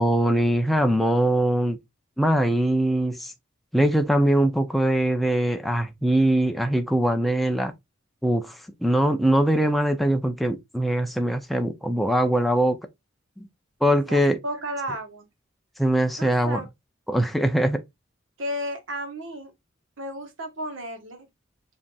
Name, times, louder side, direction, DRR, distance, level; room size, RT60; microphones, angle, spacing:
voice 1, 0.0-1.8 2.2-3.3 3.7-7.7 8.2-12.8 13.8-14.4 15.8-16.6 17.1-17.8, right 1 dB, ahead, 0.4 m, -22 dB
voice 2, 14.1-15.3 16.2-16.6 18.4-19.5 20.0-21.3, equal, 80° right, 1.3 m, -33 dB
7.4 x 2.8 x 2.3 m
head